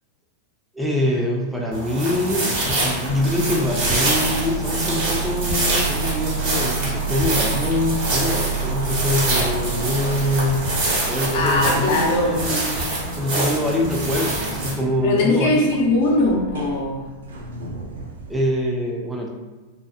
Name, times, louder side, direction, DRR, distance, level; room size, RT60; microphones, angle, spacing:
voice 1, 0.7-10.7 11.1-12.8 13.2-15.6 18.3-19.3, left 1 dB, 5° right, -1 dB, 0.4 m, -24 dB
sound 1, 1.7-14.7, right 2 dB, 55° right, 1.1 m, -25 dB
sound 2, 3.0-18.4, right 5 dB, 85° right, 0.4 m, -31 dB
voice 2, 11.3-12.4 15.0-17.1, left 2 dB, 60° left, -1 dB, 0.7 m, -20 dB
2.6 x 2.2 x 2.4 m, 1.3 s
hypercardioid pair, 105°, 0 cm